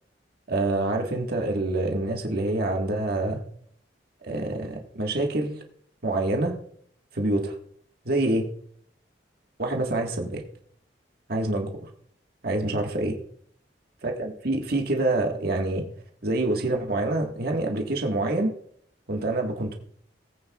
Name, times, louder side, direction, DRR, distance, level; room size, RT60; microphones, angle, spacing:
voice 1, 0.5-3.4 4.2-5.6 6.0-6.6 7.1-7.6 8.0-8.5 9.6-10.4 11.3-11.7 12.4-13.1 14.0-15.8 16.2-18.5 19.1-19.7, right 2 dB, 60° right, 2 dB, 1.5 m, -26 dB
19.5 x 8.8 x 2.3 m, 0.62 s
head